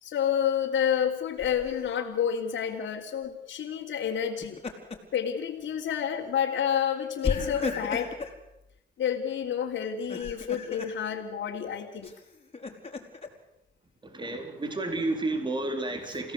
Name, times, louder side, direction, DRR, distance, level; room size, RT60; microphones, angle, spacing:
voice 1, 0.0-4.6 5.1-8.2 9.0-12.1, left 8 dB, 70° left, -3 dB, 3.3 m, -29 dB
Laughter, 1.4-1.9 4.2-5.2 5.6-5.8 7.2-8.4 9.9-11.0 12.0-13.3, left 4 dB, 30° left, 4.5 m, -35 dB
voice 2, 14.0-16.3, right 2 dB, 25° right, 6 dB, 4.2 m, -31 dB
29.0 x 17.0 x 8.4 m, 0.88 s
cardioid pair, 90°, 20 cm